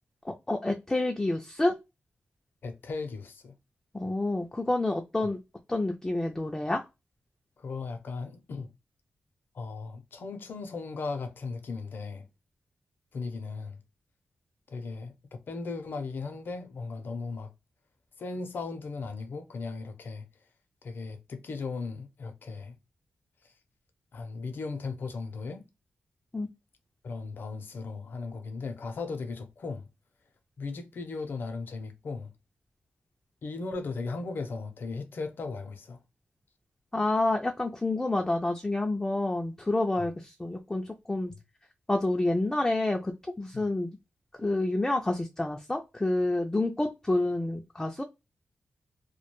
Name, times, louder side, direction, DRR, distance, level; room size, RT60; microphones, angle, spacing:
voice 1, 0.5-1.8 3.9-5.4 5.7-6.8 26.3-26.5 36.9-41.3 41.9-43.9 44.4-48.0, left 2 dB, 15° left, 0.3 m, -28 dB
voice 2, 2.6-3.5 7.6-8.7 9.5-12.3 13.1-13.8 14.7-17.5 18.2-20.3 20.8-22.8 23.4-23.5 24.1-25.7 27.0-29.9 30.6-32.3 33.4-36.0 40.0-40.1 43.5-43.6, left 4 dB, 60° left, 0.5 m, -37 dB
2.3 x 2.1 x 2.9 m
wide cardioid pair, 110°, 4 cm